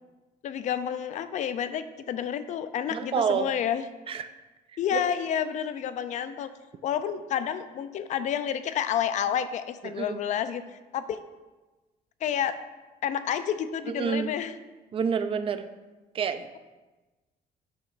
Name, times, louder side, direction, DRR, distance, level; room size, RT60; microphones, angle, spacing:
voice 1, 0.4-3.8 4.8-6.5 6.8-11.2 12.2-12.6 13.0-14.5, left 9 dB, 50° left, 11 dB, 0.4 m, -30 dB
voice 2, 2.9-3.5 4.1-4.3 4.9-5.0 9.8-10.2 13.9-14.3 14.9-15.7 16.1-16.6, right 7 dB, 35° right, 10 dB, 0.3 m, -28 dB
7.7 x 3.0 x 5.6 m, 1.2 s
cardioid pair, 170°, 16 cm